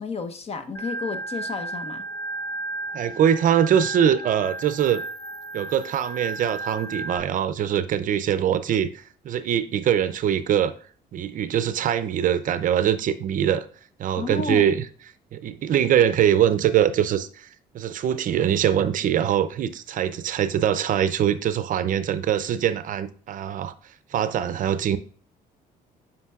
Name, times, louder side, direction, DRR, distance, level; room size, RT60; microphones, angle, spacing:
voice 1, 0.0-2.0 14.2-14.7, left 4 dB, 35° left, 0.8 m, -31 dB
Organ, 0.7-7.2, right 2 dB, 20° left, 1.3 m, -34 dB
voice 2, 2.9-5.0 5.5-10.7 11.1-13.7 14.0-14.9 15.3-17.5 17.7-23.7 24.1-25.0, right 9 dB, 50° right, 0.5 m, -23 dB
8.0 x 5.2 x 2.4 m
cardioid pair, 110°, 17 cm